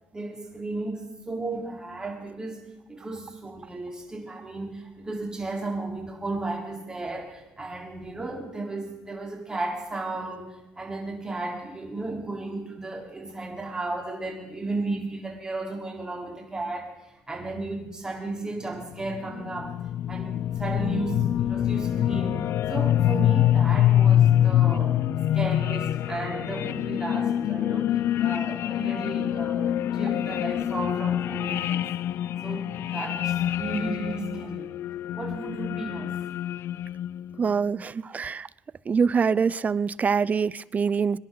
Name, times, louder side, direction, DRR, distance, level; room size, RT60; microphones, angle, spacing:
voice 1, 0.1-2.6 2.9-16.9 17.3-19.7 20.1-22.4 22.7-25.0 25.3-31.8 32.4-34.7 35.1-36.1, right 2 dB, 15° right, 4.0 m, -34 dB
sound 1, 18.9-37.3, left 11 dB, 65° left, 0.4 m, -25 dB
voice 2, 37.4-38.5 38.9-41.2, right 6 dB, 35° right, 0.5 m, -24 dB
24.5 x 11.0 x 4.0 m
cardioid pair, 90°, 5 cm